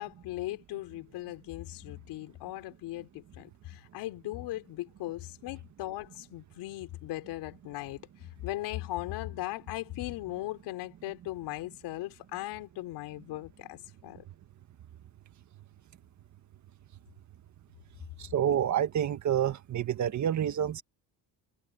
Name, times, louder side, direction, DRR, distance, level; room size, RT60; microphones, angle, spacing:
voice 1, 0.0-8.0 8.4-14.3, left 16 dB, 85° left, 4.3 m, -38 dB
voice 2, 18.2-20.8, right 9 dB, 45° right, 1.7 m, -28 dB
cardioid pair, 145°, 39 cm